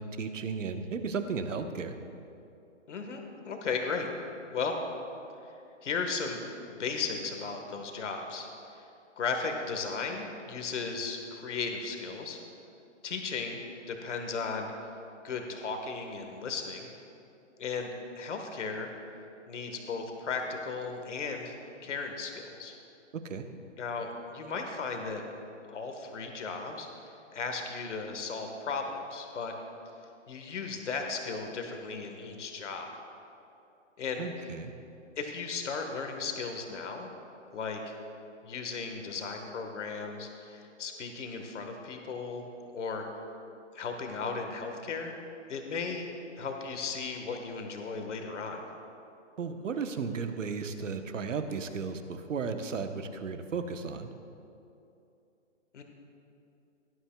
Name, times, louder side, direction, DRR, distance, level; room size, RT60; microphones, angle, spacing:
voice 1, 0.0-1.9 23.3-23.5 34.2-34.7 49.4-54.1, right 5 dB, 85° right, 7 dB, 1.1 m, -34 dB
voice 2, 2.9-4.1 4.5-4.7 5.8-6.4 6.8-8.5 8.7-8.8 9.2-12.4 13.0-14.7 15.2-16.9 17.6-18.9 19.5-21.6 21.8-22.7 23.8-25.2 25.7-26.9 27.3-29.5 30.3-32.9 34.0-34.2 35.2-37.1 37.5-37.9 38.4-42.4 42.7-43.1 43.7-45.1 45.5-46.1 46.4-48.6 55.7-55.8, left 4 dB, 70° left, 4 dB, 1.5 m, -35 dB
17.5 x 11.0 x 2.3 m, 2.7 s
hypercardioid pair, 175°, 37 cm